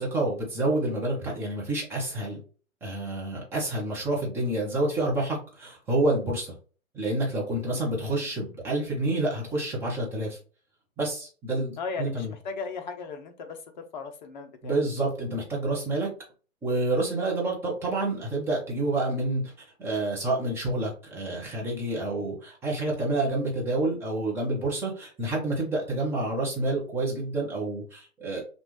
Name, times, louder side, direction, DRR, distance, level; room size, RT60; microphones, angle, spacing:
voice 1, 0.0-2.4 2.8-6.5 6.9-10.4 11.0-12.3 14.6-16.1 16.6-19.5 19.8-28.4, right 2 dB, 5° right, -4 dB, 0.7 m, -28 dB
voice 2, 7.7-8.2 11.8-14.8, left 5 dB, 35° left, 6 dB, 0.8 m, -37 dB
5.9 x 2.4 x 3.1 m, 0.38 s
hypercardioid pair, 140°, 41 cm